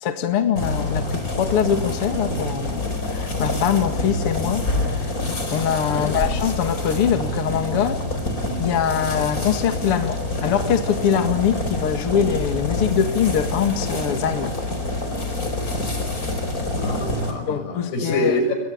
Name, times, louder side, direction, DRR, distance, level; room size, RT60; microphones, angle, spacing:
voice 1, 0.0-8.0 8.6-14.6 17.5-18.3, left 8 dB, 45° left, 8 dB, 2.2 m, -23 dB
sound 1, 0.6-17.3, left 2 dB, 20° left, 4.6 m, -26 dB
voice 2, 16.8-18.5, left 1 dB, 70° left, 4 dB, 8.7 m, -26 dB
28.5 x 23.0 x 8.6 m, 0.90 s
omnidirectional pair, 4.9 m